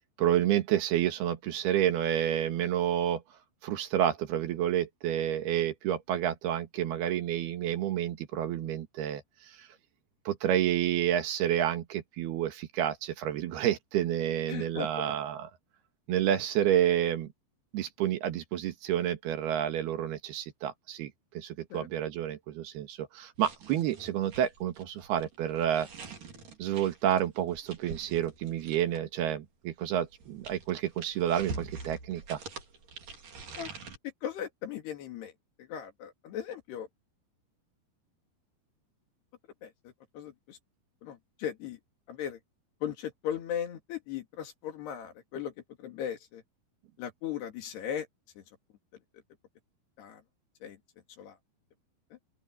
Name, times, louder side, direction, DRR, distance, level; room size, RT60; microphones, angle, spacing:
voice 1, 0.2-3.2 3.6-9.7 10.3-15.5 16.1-17.3 17.7-25.9 26.6-32.4, right 11 dB, 70° right, 3.5 m, -29 dB
voice 2, 14.5-15.1 21.7-21.9 33.6-33.7 34.0-35.3 35.6-36.9 39.6-40.6 41.0-41.8 42.1-42.4 42.8-45.5 45.8-46.4 47.0-48.1 48.4-48.5 50.0-50.2 50.6-50.8 51.2-51.4 52.1-52.2, left 9 dB, 75° left, 4.5 m, -38 dB
sound 1, 23.4-29.1 30.0-34.0, right 4 dB, 55° right, 5.6 m, -45 dB
open air
omnidirectional pair, 4.8 m